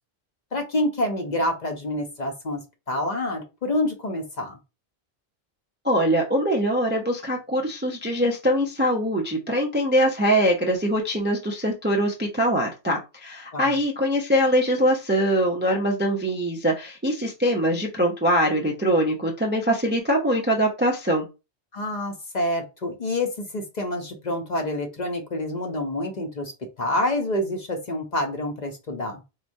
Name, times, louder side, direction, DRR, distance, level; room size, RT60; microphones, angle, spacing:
voice 1, 0.5-4.6 13.5-13.8 21.7-26.5 26.8-29.2, left 1 dB, 50° left, 3 dB, 0.7 m, -27 dB
voice 2, 5.8-21.3, equal, 15° right, 0 dB, 0.4 m, -23 dB
4.6 x 2.1 x 2.6 m, 0.27 s
omnidirectional pair, 1.1 m